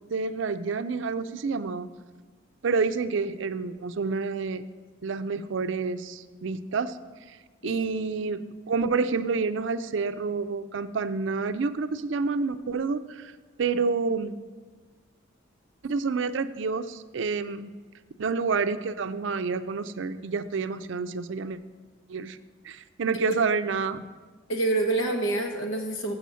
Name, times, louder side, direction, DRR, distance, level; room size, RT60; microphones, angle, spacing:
voice 1, 0.1-1.9 2.6-4.6 5.0-7.0 7.6-8.4 8.7-13.3 13.6-14.3 15.8-17.7 18.2-21.6 22.1-22.4 22.6-24.0, right 4 dB, 65° right, 11 dB, 0.4 m, -28 dB
voice 2, 7.6-8.0 23.1-23.4 24.5-26.1, right 2 dB, 85° left, 3 dB, 1.3 m, -27 dB
7.1 x 6.8 x 6.2 m, 1.5 s
head